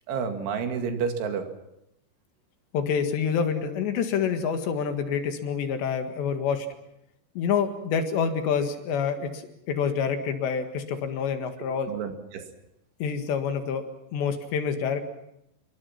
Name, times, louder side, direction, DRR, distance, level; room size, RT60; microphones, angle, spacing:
voice 1, 0.1-1.5 11.9-12.5, right 6 dB, 80° right, 5 dB, 4.6 m, -30 dB
voice 2, 2.7-6.7 7.4-11.9 13.0-13.8 14.1-15.0, left 6 dB, 70° left, 6 dB, 3.9 m, -27 dB
27.5 x 22.5 x 5.9 m, 0.83 s
omnidirectional pair, 5.4 m